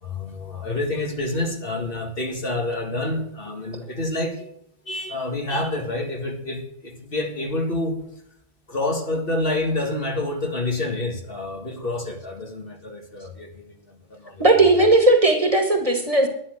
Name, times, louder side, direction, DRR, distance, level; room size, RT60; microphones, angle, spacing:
voice 1, 0.0-4.5 4.9-8.0 8.7-14.4, left 2 dB, 60° left, 2 dB, 2.1 m, -28 dB
voice 2, 14.4-16.3, right 2 dB, 35° right, 4 dB, 1.8 m, -17 dB
11.5 x 10.0 x 6.4 m, 0.74 s
omnidirectional pair, 1.1 m